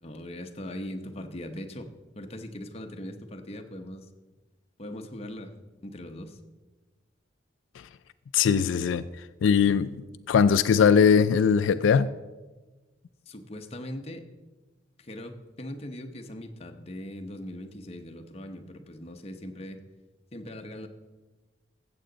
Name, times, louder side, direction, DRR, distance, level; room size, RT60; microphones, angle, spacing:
voice 1, 0.0-4.1 4.8-5.5 5.8-6.4 13.3-14.3 15.0-19.8 20.3-20.9, left 1 dB, 30° left, 5 dB, 0.8 m, -40 dB
voice 2, 8.3-9.9 10.3-12.1, left 6 dB, 80° left, 13 dB, 0.3 m, -21 dB
15.0 x 7.8 x 3.9 m, 1.2 s
head